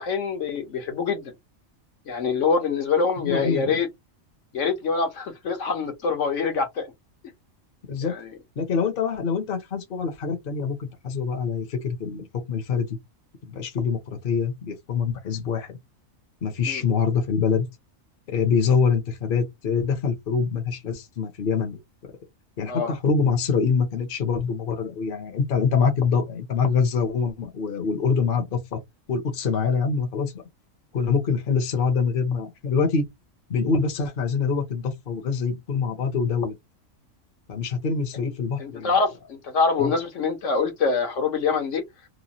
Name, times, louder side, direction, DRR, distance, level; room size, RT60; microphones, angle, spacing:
voice 1, 0.0-1.3 2.1-3.9 4.5-6.9 8.0-8.3 16.7-16.8 22.7-22.9 38.6-41.8, left 5 dB, 65° left, 1.2 m, -25 dB
voice 2, 3.2-3.8 7.9-8.1 8.6-12.9 13.5-15.8 16.4-17.7 18.3-21.8 22.6-28.8 29.1-30.4 30.9-33.1 33.5-36.5 37.5-38.9 39.8-40.0, left 5 dB, 45° left, 1.0 m, -25 dB
3.0 x 2.1 x 2.7 m
omnidirectional pair, 1.4 m